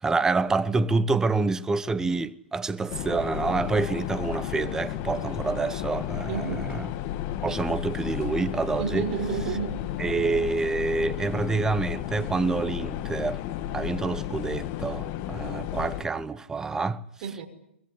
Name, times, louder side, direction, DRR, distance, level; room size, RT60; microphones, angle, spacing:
voice 1, 0.0-6.9 7.4-9.1 10.0-13.4 13.7-17.0, right 3 dB, 10° right, 0.9 m, -27 dB
sound 1, 2.9-16.0, left 12 dB, 35° left, 2.0 m, -33 dB
voice 2, 6.3-6.7 8.8-9.8 17.2-17.5, right 6 dB, 40° right, 5.2 m, -31 dB
23.0 x 21.0 x 10.0 m
hypercardioid pair, 125°, 6 cm